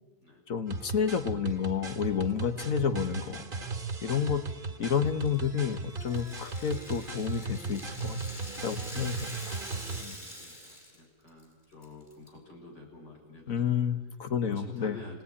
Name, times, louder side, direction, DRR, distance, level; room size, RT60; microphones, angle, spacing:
voice 1, 0.5-3.4 4.0-4.4 4.8-8.2 8.6-9.5 10.0-10.1 13.5-15.0, left 7 dB, 50° left, 9 dB, 1.6 m, -30 dB
sound 1, 0.7-10.0, right 4 dB, 30° right, 1.6 m, -37 dB
Rattle (instrument), 5.2-11.0 11.3-11.4 11.8-12.3, equal, 25° left, 7.2 m, -45 dB
voice 2, 10.1-13.8 14.5-15.2, left 2 dB, 65° left, -1 dB, 7.3 m, -51 dB
28.0 x 18.5 x 9.9 m, 1.2 s
omnidirectional pair, 2.0 m